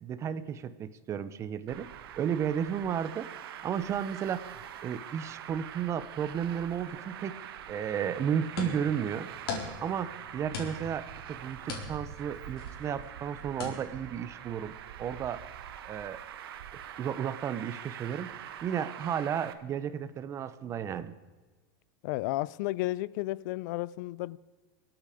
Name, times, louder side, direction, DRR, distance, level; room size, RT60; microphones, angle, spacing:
voice 1, 0.0-1.9 2.2-3.3 3.6-7.4 7.7-14.7 15.0-15.4 15.9-16.2 16.7-21.2, right 8 dB, 25° right, 0.8 m, -33 dB
Traffic noise roadway noise, 1.7-19.5, right 10 dB, 85° right, 1.3 m, -44 dB
sound 1, 8.1-13.7, left 4 dB, 85° left, 4.3 m, -42 dB
voice 2, 22.0-24.4, left 18 dB, 55° left, 0.5 m, -32 dB
26.5 x 9.0 x 5.1 m
supercardioid pair, 155°, 12 cm